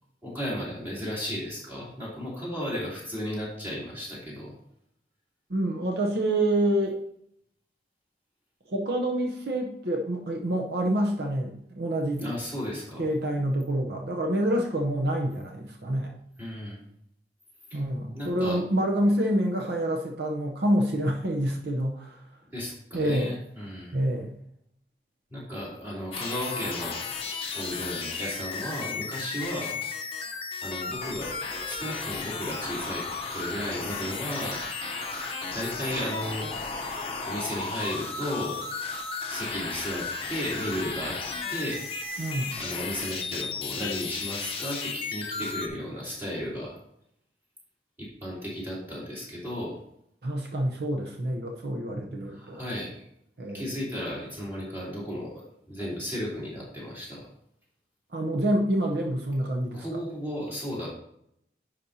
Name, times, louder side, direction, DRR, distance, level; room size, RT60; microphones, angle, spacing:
voice 1, 0.2-4.5 12.2-13.1 16.4-16.8 17.7-17.8 18.1-18.6 22.5-24.0 25.3-29.8 30.6-31.3 31.6-34.6 35.5-36.9 37.2-38.6 39.3-41.2 41.5-41.8 42.6-46.8 48.0-49.8 52.2-53.0 53.5-57.3 59.7-60.9, equal, 10° right, -7 dB, 2.9 m, -34 dB
voice 2, 5.5-7.0 8.7-12.3 13.0-16.1 17.7-22.2 22.9-23.3 23.9-24.4 42.2-42.6 50.2-52.6 53.4-53.7 58.1-59.9, right 1 dB, 65° right, 1 dB, 0.8 m, -27 dB
sound 1, 26.1-45.7, left 4 dB, 30° left, 0.8 m, -34 dB
10.0 x 5.3 x 2.8 m, 0.73 s
head